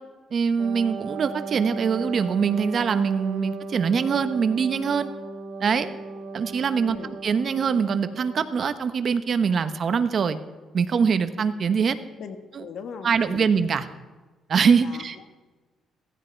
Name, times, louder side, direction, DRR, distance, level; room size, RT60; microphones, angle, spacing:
voice 1, 0.3-5.1 5.6-5.9 6.3-7.0 7.2-10.4 10.7-12.0 12.5-12.6 13.0-13.9 14.5-15.2, right 6 dB, 50° right, 10 dB, 1.1 m, -23 dB
Wind instrument woodwind instrument, 0.6-8.7, right 4 dB, 75° right, 1.6 m, -37 dB
voice 2, 6.8-7.1 12.2-13.5 14.8-15.3, left 6 dB, 65° left, 7 dB, 1.6 m, -39 dB
16.0 x 15.5 x 4.6 m, 1.3 s
cardioid pair, 110°, 0 cm